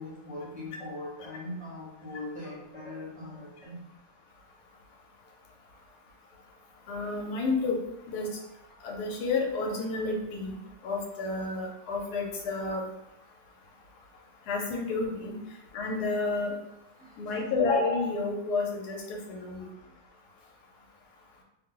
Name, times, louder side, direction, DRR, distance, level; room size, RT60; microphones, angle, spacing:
voice 1, 0.0-3.8 15.4-15.5 17.0-17.2, left 2 dB, 5° right, -8 dB, 0.8 m, -41 dB
voice 2, 6.9-7.8 8.1-8.3 8.8-10.6 10.8-12.8 14.5-15.3 15.7-16.5 17.2-19.7, left 3 dB, 75° left, 0 dB, 1.2 m, -30 dB
2.8 x 2.0 x 3.7 m, 0.87 s
omnidirectional pair, 1.8 m